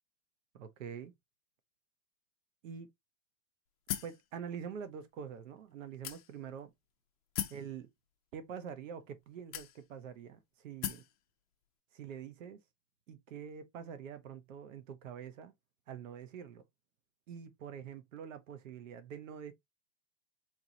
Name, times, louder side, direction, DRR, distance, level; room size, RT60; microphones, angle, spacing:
voice 1, 0.5-1.1 2.6-2.9 4.0-6.7 7.5-7.9 8.3-11.0 11.9-12.6 13.1-15.5 15.9-16.6 17.3-19.5, right 7 dB, 85° right, 1.0 m, -45 dB
sound 1, 3.9-4.2 5.0-5.1 6.0-6.6 7.4-7.7 8.6-8.7 9.5-10.1 10.8-11.1, left 12 dB, 30° left, 0.4 m, -38 dB
4.6 x 3.0 x 2.7 m
supercardioid pair, 175°, 37 cm